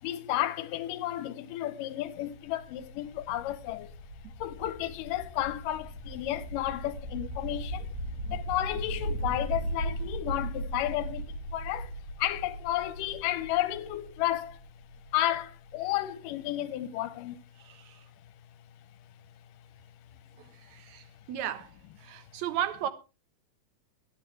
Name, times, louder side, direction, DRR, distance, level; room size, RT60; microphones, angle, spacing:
voice 1, 0.0-3.9 4.4-7.9 8.3-11.9 12.2-14.6 15.1-17.4, left 13 dB, 90° left, 2.4 m, -32 dB
sound 1, 2.0-15.7, right 1 dB, 30° right, 6.0 m, -38 dB
voice 2, 17.6-18.1 20.4-21.7 22.0-22.9, right 11 dB, 65° right, 2.3 m, -35 dB
23.0 x 8.4 x 3.2 m
omnidirectional pair, 3.8 m